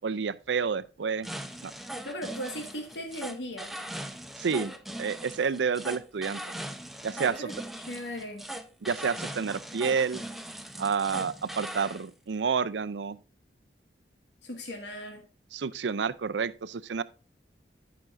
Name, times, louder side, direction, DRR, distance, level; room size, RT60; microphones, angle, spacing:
voice 1, 0.0-1.3 1.6-1.7 4.4-6.4 7.0-7.5 8.8-10.2 10.8-13.2 15.5-17.0, right 6 dB, 85° right, 0.5 m, -29 dB
sound 1, 1.2-12.0, right 1 dB, ahead, 0.7 m, -40 dB
voice 2, 2.1-3.8 7.2-7.5 7.9-8.5 14.4-15.2, equal, 80° left, 1.8 m, -38 dB
14.5 x 5.9 x 2.6 m
head